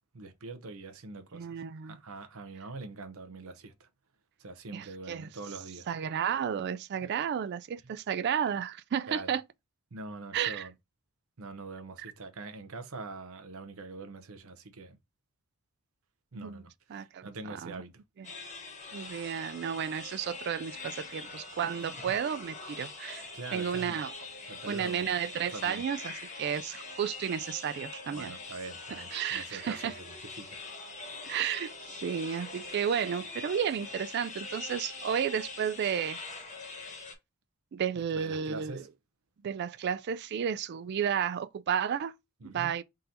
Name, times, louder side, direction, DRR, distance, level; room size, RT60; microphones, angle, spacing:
voice 1, 0.1-3.9 4.4-5.9 7.8-7.9 9.1-9.3 9.9-10.7 11.4-15.0 16.3-18.0 21.9-22.1 23.3-24.0 24.5-25.1 25.5-25.8 28.1-30.6 37.9-38.9 42.4-42.7, right 3 dB, 70° right, 0.7 m, -44 dB
voice 2, 1.3-2.0 4.7-5.3 5.9-9.4 10.3-10.7 16.3-16.6 16.9-17.3 17.6-17.8 18.2-18.3 18.9-24.1 24.7-26.1 26.4-28.3 29.1-29.9 31.2-36.2 37.7-38.8 39.4-42.1 42.4-42.8, right 8 dB, 50° right, 0.3 m, -32 dB
sound 1, 18.2-37.1, left 3 dB, 30° left, 1.1 m, -43 dB
3.8 x 2.8 x 3.8 m
head